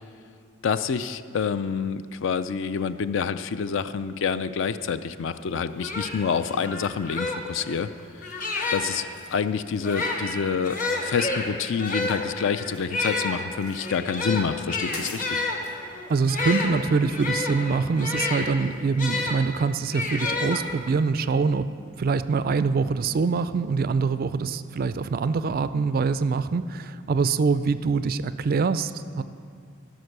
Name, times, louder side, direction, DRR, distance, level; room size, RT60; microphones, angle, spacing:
voice 1, 0.6-7.9 8.7-9.1 9.3-15.4, left 6 dB, 60° left, 12 dB, 0.4 m, -27 dB
sound 1, 5.4-5.5 5.8-9.1 9.8-19.4 19.9-21.0, left 3 dB, 35° left, 1.0 m, -30 dB
sound 2, 8.2-8.5 9.0-9.4 9.8-10.2 10.8-11.5 11.8-13.0 13.5-13.9 14.5-14.6 14.8-15.8, left 3 dB, 85° left, 1.6 m, -44 dB
voice 2, 16.1-21.7 22.0-29.2, right 4 dB, 40° right, 13 dB, 0.3 m, -24 dB
15.5 x 6.0 x 6.6 m, 2.3 s
head